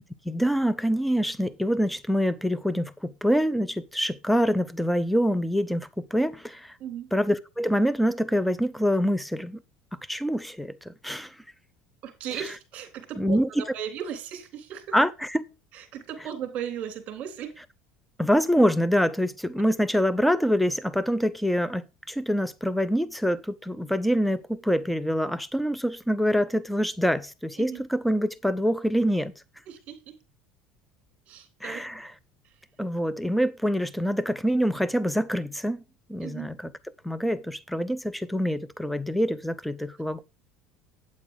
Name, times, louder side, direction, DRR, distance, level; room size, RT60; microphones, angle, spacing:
voice 1, 0.2-6.7 7.1-9.6 10.1-11.3 13.2-13.5 14.9-15.4 18.2-29.3 31.6-32.1 32.8-35.8 36.1-36.5 37.0-40.2, equal, ahead, 0.7 m, -25 dB
voice 2, 12.0-14.9 15.7-17.5 27.6-27.8 29.7-30.1 31.3-31.9 32.4-32.5 36.2-36.6, right 9 dB, 50° right, 3.1 m, -37 dB
8.7 x 8.0 x 3.9 m
supercardioid pair, 115°, 3 cm